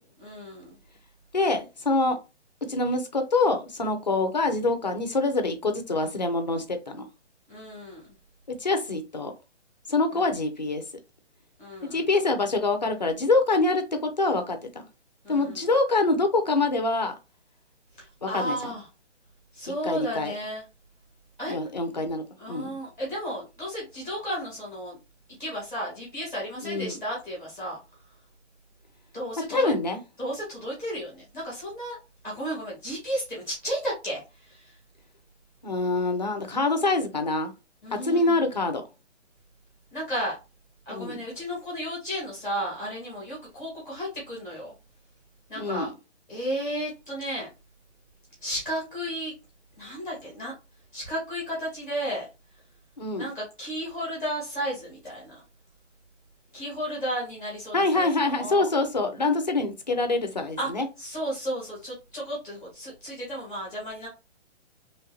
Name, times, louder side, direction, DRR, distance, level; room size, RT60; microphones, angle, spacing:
voice 1, 0.2-0.7 7.5-8.0 10.1-10.3 11.6-12.0 15.2-15.7 18.2-18.9 19.5-20.6 21.4-21.5 22.4-25.0 25.4-27.8 29.1-29.7 30.2-32.0 32.2-34.2 34.5-34.7 37.8-38.4 39.9-40.3 40.9-44.7 45.5-45.9 46.3-47.5 48.4-49.3 49.8-50.5 50.9-52.2 53.2-55.4 56.5-58.7 60.6-60.7 61.0-64.1, equal, 5° right, 0.9 m, -33 dB
voice 2, 1.3-2.2 2.7-7.1 8.6-9.3 9.9-10.8 11.9-14.8 15.3-17.1 18.2-18.8 19.8-20.3 21.5-22.8 26.6-27.0 29.5-30.0 35.6-37.5 38.0-38.8 40.9-41.2 45.6-45.9 53.0-53.3 57.7-60.9, left 3 dB, 40° left, 0.4 m, -25 dB
3.0 x 2.4 x 2.8 m
hypercardioid pair, 180°, 35 cm